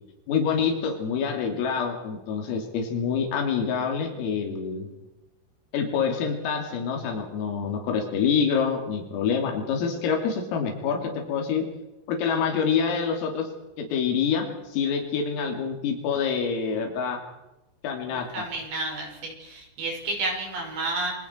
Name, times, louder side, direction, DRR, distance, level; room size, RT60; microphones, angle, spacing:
voice 1, 0.3-4.9 5.7-11.6 12.1-13.5 13.8-17.2 17.8-18.3, left 6 dB, 90° left, 2 dB, 5.7 m, -26 dB
voice 2, 18.1-21.1, right 2 dB, 65° right, 0 dB, 8.3 m, -31 dB
27.0 x 25.5 x 4.7 m, 0.97 s
omnidirectional pair, 5.8 m